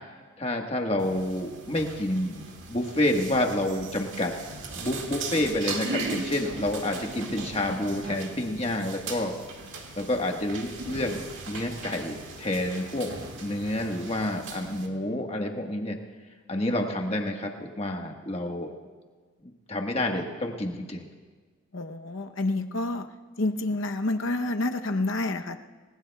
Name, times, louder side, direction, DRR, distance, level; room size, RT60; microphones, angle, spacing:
voice 1, 0.4-4.4 4.7-9.3 10.0-13.1 13.4-16.0 16.5-18.7 19.4-21.1, left 1 dB, 30° left, 2 dB, 1.4 m, -29 dB
sound 1, 1.0-14.9, right 3 dB, 65° right, 2.0 m, -38 dB
voice 2, 21.7-23.1 23.4-25.6, left 2 dB, 65° left, 6 dB, 0.8 m, -28 dB
28.5 x 20.0 x 2.3 m, 1.5 s
head